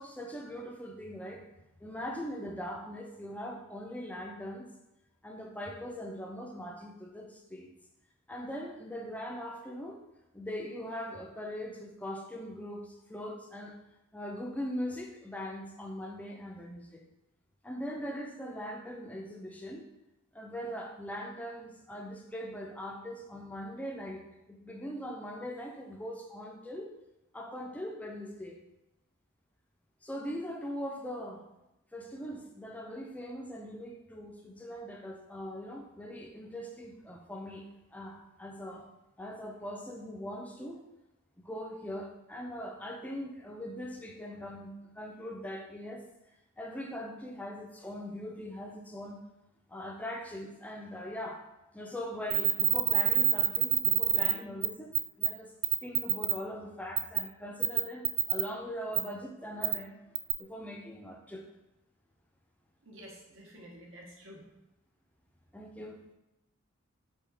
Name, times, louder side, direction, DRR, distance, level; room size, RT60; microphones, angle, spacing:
voice 1, 0.0-1.4 1.8-4.7 5.2-7.7 8.3-10.0 10.3-13.8 14.1-17.0 17.6-19.9 20.3-26.9 27.3-28.6 30.0-31.4 31.9-38.9 39.2-40.8 41.4-46.2 46.6-49.2 49.7-51.4 51.7-55.5 55.8-59.9 60.4-61.4 65.5-66.0, equal, 5° left, 2 dB, 0.4 m, -41 dB
sound 1, 52.3-54.3 54.6-54.7 54.9-55.3 55.6-56.3 57.0-57.2 57.6-58.4 58.9-59.0 59.6-59.8 60.2-60.3, right 12 dB, 90° right, 0.4 m, -25 dB
voice 2, 62.8-64.4, equal, 70° right, -2 dB, 1.0 m, -50 dB
4.4 x 3.6 x 3.3 m, 0.92 s
head